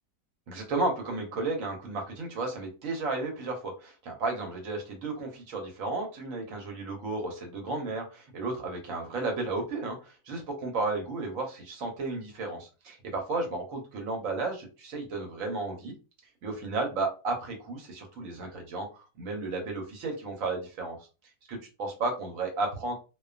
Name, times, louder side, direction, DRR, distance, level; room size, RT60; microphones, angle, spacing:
voice 1, 0.5-15.9 16.4-21.0 21.5-22.9, right 3 dB, 70° right, 2 dB, 1.1 m, -33 dB
2.5 x 2.2 x 2.4 m, 0.32 s
omnidirectional pair, 1.5 m